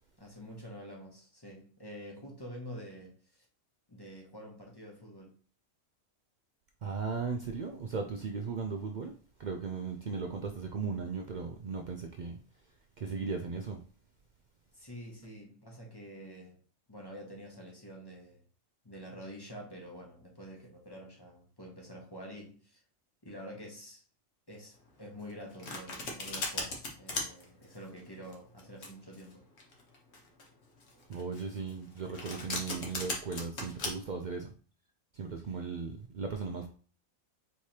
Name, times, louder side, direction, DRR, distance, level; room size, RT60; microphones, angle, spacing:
voice 1, 0.2-3.5 3.9-5.4 14.7-16.6 16.9-18.4 18.8-22.8 23.2-24.0 24.5-29.4, equal, 20° left, 0.9 m, -47 dB
voice 2, 6.8-9.1 9.4-12.4 13.0-13.8 31.1-34.5 35.1-36.7, right 5 dB, 85° right, 0.4 m, -37 dB
Domestic sounds home sounds, 25.2-33.9, left 2 dB, 55° left, 1.3 m, -38 dB
4.7 x 3.4 x 2.8 m
omnidirectional pair, 1.4 m